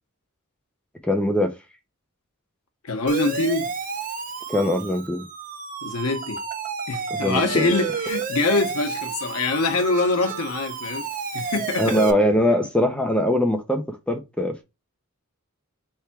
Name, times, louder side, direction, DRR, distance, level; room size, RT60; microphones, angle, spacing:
voice 1, 1.0-1.6 4.5-5.3 7.1-7.7 11.8-14.6, equal, 5° left, 0.6 m, -22 dB
voice 2, 2.8-3.7 5.8-6.4 6.9-11.1 11.3-12.0, left 3 dB, 80° left, 0.9 m, -24 dB
Siren, 3.1-12.1, right 5 dB, 40° right, 0.7 m, -31 dB
3.5 x 3.4 x 4.4 m
head